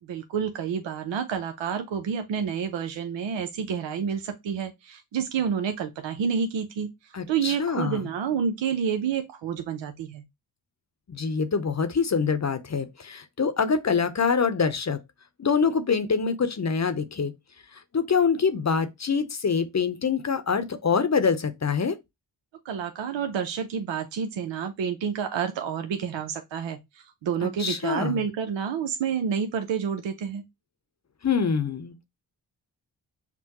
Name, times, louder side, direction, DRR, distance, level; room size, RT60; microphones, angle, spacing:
voice 1, 0.0-10.2 22.6-30.4, right 7 dB, 75° right, 0.7 m, -29 dB
voice 2, 7.1-8.1 11.1-15.0 15.4-17.3 17.9-22.0 27.6-28.2 31.2-32.0, left 5 dB, 35° left, 0.8 m, -25 dB
5.9 x 2.2 x 2.9 m
supercardioid pair, 45°, 45 cm